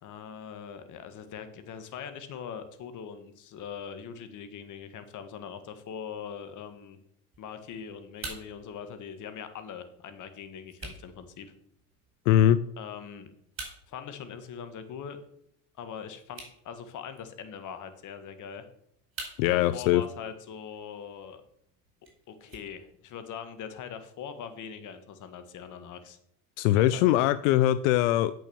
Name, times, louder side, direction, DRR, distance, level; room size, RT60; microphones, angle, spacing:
voice 1, 0.0-7.0 7.4-11.5 12.8-13.3 13.9-15.2 15.8-18.7 19.5-21.4 22.3-26.2 26.7-27.3, left 7 dB, 50° left, 10 dB, 1.5 m, -42 dB
sound 1, 7.3-23.3, right 3 dB, 35° right, 4.7 m, -49 dB
voice 2, 12.3-12.6 19.4-20.0 26.6-28.3, left 13 dB, 90° left, 15 dB, 0.5 m, -22 dB
8.4 x 6.3 x 6.9 m, 0.71 s
supercardioid pair, 105°, 38 cm